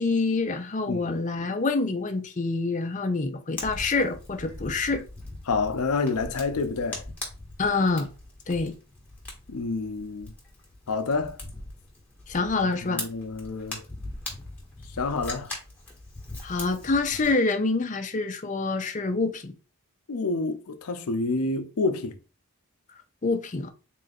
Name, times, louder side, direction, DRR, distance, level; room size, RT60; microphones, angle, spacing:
voice 1, 0.0-5.0 7.6-8.1 8.5-8.7 12.3-13.1 16.4-19.5 23.2-23.7, left 3 dB, 35° left, 0.5 m, -26 dB
voice 2, 0.9-1.2 4.9-5.0 5.5-7.0 9.5-10.3 10.9-11.4 12.8-13.8 15.0-15.5 20.1-22.2, left 3 dB, 80° left, 0.6 m, -28 dB
Fire, 3.6-17.3, left 2 dB, 5° left, 1.2 m, -41 dB
3.8 x 2.4 x 4.0 m
head